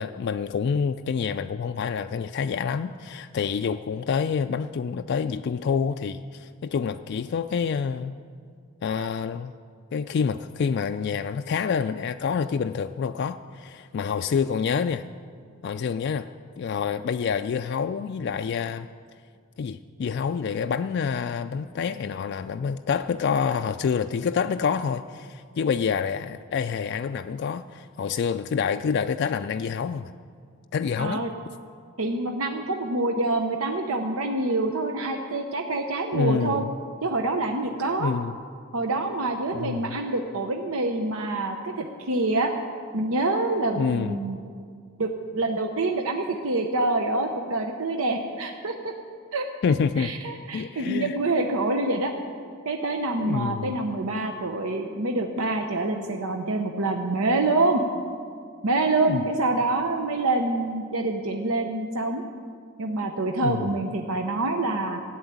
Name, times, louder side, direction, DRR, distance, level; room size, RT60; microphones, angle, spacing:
voice 1, 0.0-8.1 8.8-9.5 9.9-15.0 15.6-16.3 16.6-18.9 19.6-30.1 30.7-31.2 36.1-36.7 38.0-38.3 39.5-40.0 43.8-44.1 49.6-50.1 50.5-51.2 53.2-53.8 59.1-59.2 63.4-63.7, left 6 dB, 55° left, 8 dB, 0.3 m, -27 dB
voice 2, 31.0-31.3 32.0-36.6 37.0-38.1 38.7-42.5 42.9-44.4 45.0-48.9 49.3-49.5 50.0-52.1 52.6-57.8 58.6-62.2 62.8-65.0, right 2 dB, 90° right, 4 dB, 0.9 m, -26 dB
14.0 x 8.0 x 9.4 m, 2.2 s
head